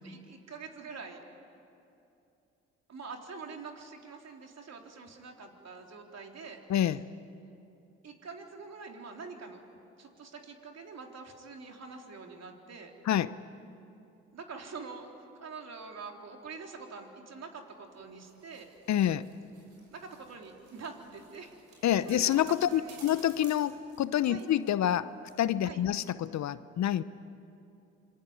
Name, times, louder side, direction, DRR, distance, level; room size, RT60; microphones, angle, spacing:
voice 1, 0.0-1.2 2.9-6.6 8.0-9.7 10.0-12.9 14.3-15.1 15.4-18.7 19.9-21.5 22.1-22.4 22.7-23.0 24.3-24.5 25.6-25.8, right 4 dB, 50° right, 2 dB, 3.8 m, -45 dB
voice 2, 6.7-7.0 13.0-13.3 18.9-19.3 21.8-25.1 25.4-27.0, left 11 dB, 55° left, 16 dB, 0.8 m, -27 dB
sound 1, 18.0-25.0 25.3-25.4, right 4 dB, 70° right, 6.5 m, -56 dB
26.5 x 22.5 x 9.7 m, 2.7 s
hypercardioid pair, 55°, 33 cm